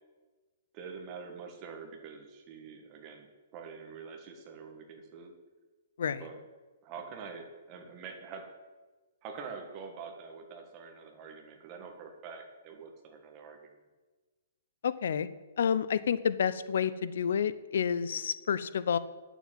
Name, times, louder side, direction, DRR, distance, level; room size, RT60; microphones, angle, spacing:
voice 1, 0.7-3.3 3.5-5.3 6.2-6.4 6.8-8.4 9.2-13.7, right 5 dB, 25° right, 3 dB, 1.6 m, -45 dB
voice 2, 14.8-15.3 15.6-19.0, left 7 dB, 70° left, 15 dB, 0.6 m, -29 dB
9.3 x 7.2 x 7.5 m, 1.3 s
hypercardioid pair, 165°, 0 cm